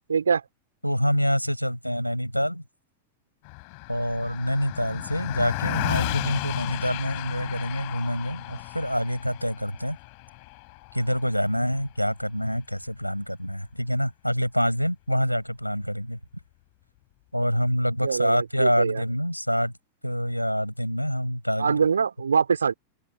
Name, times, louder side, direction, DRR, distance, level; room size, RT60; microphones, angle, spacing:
voice 1, 0.1-0.4 18.0-19.0 21.6-22.7, right 6 dB, 70° right, 3.4 m, -23 dB
voice 2, 0.8-2.6 3.9-10.0 10.9-16.2 17.3-19.7 20.0-21.9, equal, 90° left, 7.7 m, -26 dB
Car passing by, 3.4-13.1, left 36 dB, 45° left, 4.5 m, -34 dB
figure-of-eight pair, 90°, 0 cm